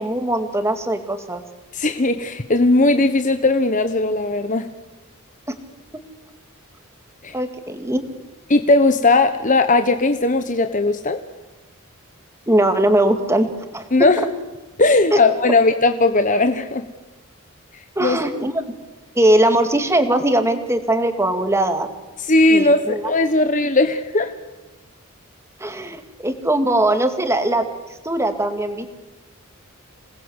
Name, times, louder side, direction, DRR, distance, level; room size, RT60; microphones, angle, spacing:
voice 1, 0.0-1.4 5.5-5.6 7.3-8.0 12.5-13.8 15.1-15.2 18.0-18.6 19.2-21.9 22.5-23.0 25.6-27.6 28.0-28.9, right 1 dB, 10° right, 7 dB, 2.2 m, -20 dB
voice 2, 1.7-4.7 7.2-7.4 8.5-11.2 13.9-14.2 14.8-16.8 18.0-18.2 22.2-24.3, left 2 dB, 35° left, 8 dB, 1.2 m, -17 dB
27.5 x 19.5 x 8.1 m, 1.1 s
head